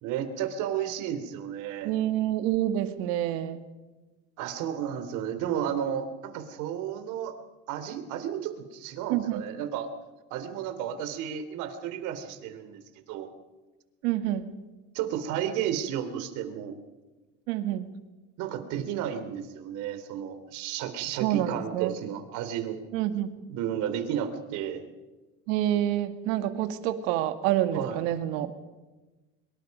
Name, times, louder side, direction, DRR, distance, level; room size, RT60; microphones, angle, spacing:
voice 1, 0.0-1.9 4.4-7.3 7.7-9.9 10.3-12.8 13.1-13.3 14.9-16.8 18.4-22.8 23.5-24.8 27.7-28.0, right 9 dB, 65° right, 9 dB, 3.3 m, -32 dB
voice 2, 1.9-3.6 9.1-9.5 14.0-14.5 17.5-17.9 21.2-22.0 22.9-23.3 25.5-28.6, right 12 dB, 85° right, 9 dB, 2.1 m, -27 dB
24.5 x 22.5 x 5.4 m, 1.1 s
cardioid pair, 150°, 32 cm